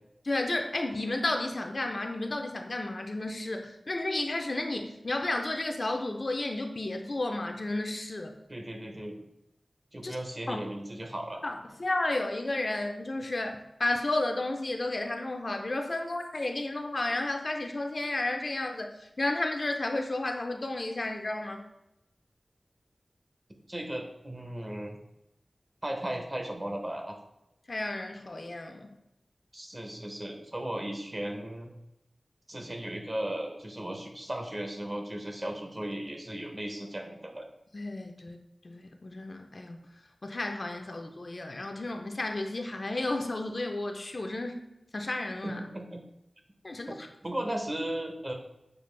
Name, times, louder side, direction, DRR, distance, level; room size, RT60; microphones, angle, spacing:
voice 1, 0.2-8.4 10.0-10.2 10.5-10.6 11.4-11.5 11.8-21.6 27.7-28.9 37.7-38.4 38.6-39.8 40.2-44.6 44.9-45.6 46.6-46.9, left 2 dB, 50° left, 4 dB, 0.5 m, -32 dB
voice 2, 8.5-9.2 9.9-11.4 23.7-25.0 25.8-27.1 29.5-31.7 32.5-37.5 45.4-46.0 47.2-48.3, right 1 dB, 35° right, 3 dB, 0.7 m, -36 dB
6.7 x 2.4 x 3.2 m, 0.87 s
wide cardioid pair, 65°, 0 cm